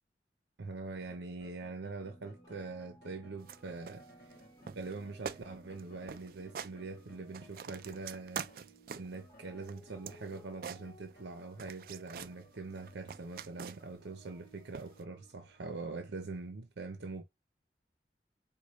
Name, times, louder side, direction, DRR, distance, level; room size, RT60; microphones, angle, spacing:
voice 1, 0.6-4.4 4.7-8.4 9.0-17.2, right 3 dB, 90° right, 0.7 m, -43 dB
sound 1, 1.0-8.1 8.4-11.2, equal, 65° left, 0.9 m, -62 dB
sound 2, 2.0-15.8, right 1 dB, 20° left, 1.1 m, -60 dB
sound 3, 3.4-3.6 3.9-4.4 4.7-5.0 5.2-5.4 5.7-5.8 6.1-6.7 7.1-9.2 9.6-11.3 11.6-12.4 12.8-14.0 14.7-15.0, right 7 dB, 55° right, 0.3 m, -44 dB
4.8 x 2.2 x 4.0 m
head